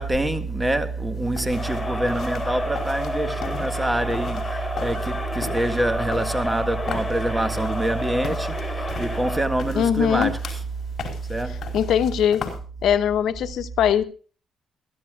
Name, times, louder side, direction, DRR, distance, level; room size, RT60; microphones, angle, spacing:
voice 1, 0.0-10.4 11.3-11.6, right 2 dB, 10° right, 1.8 m, -25 dB
sound 1, 1.1-12.6, left 6 dB, 55° left, 4.7 m, -38 dB
Crowd, 1.5-9.6, left 1 dB, 10° left, 3.7 m, -31 dB
voice 2, 9.8-10.3 11.7-12.5 12.8-14.0, left 9 dB, 75° left, 1.1 m, -21 dB
21.5 x 14.5 x 2.4 m
cardioid pair, 90°, 0 cm